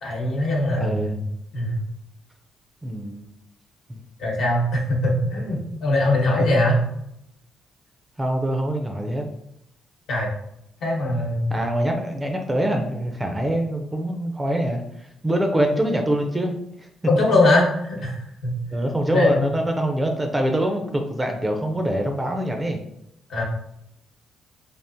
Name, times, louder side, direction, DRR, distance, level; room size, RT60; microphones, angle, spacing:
voice 1, 0.0-1.1 1.5-1.8 4.2-6.8 10.1-10.3 10.8-11.6 17.1-18.5 19.1-19.4 23.3-23.4, left 1 dB, 65° left, -2 dB, 1.0 m, -21 dB
voice 2, 0.8-1.2 2.8-3.3 3.9-4.0 8.2-9.3 11.5-14.8 15.2-16.5 18.7-22.8, right 1 dB, 15° right, 3 dB, 0.5 m, -24 dB
3.5 x 2.4 x 2.6 m, 0.78 s
cardioid pair, 90°, 0 cm